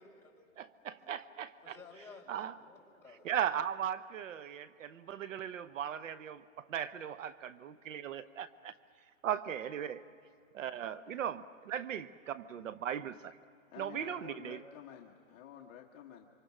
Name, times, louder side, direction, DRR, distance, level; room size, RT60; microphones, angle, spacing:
voice 1, 0.0-1.2 1.6-3.4, left 4 dB, 5° left, -5 dB, 4.6 m, -56 dB
voice 2, 0.6-1.8 2.3-2.5 3.2-8.7 9.2-10.0 10.5-13.3 13.8-14.6, right 9 dB, 70° right, 14 dB, 0.9 m, -38 dB
voice 3, 13.7-16.3, left 9 dB, 30° left, 0 dB, 1.3 m, -51 dB
26.5 x 25.0 x 6.1 m, 2.4 s
hypercardioid pair, 145°, 40 cm